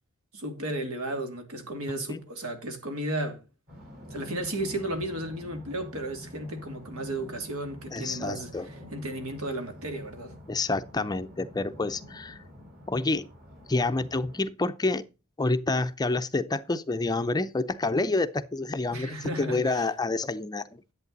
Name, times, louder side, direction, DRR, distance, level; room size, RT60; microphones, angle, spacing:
voice 1, 0.3-3.4 4.1-8.5 8.9-10.4 18.9-19.8, right 1 dB, 75° right, 2.7 m, -34 dB
sound 1, 3.7-14.4, left 1 dB, 45° right, 4.7 m, -47 dB
voice 2, 7.9-8.7 10.5-12.4 12.9-13.3 13.7-15.0 15.4-20.8, left 2 dB, 20° left, 0.5 m, -28 dB
11.0 x 8.1 x 4.0 m
head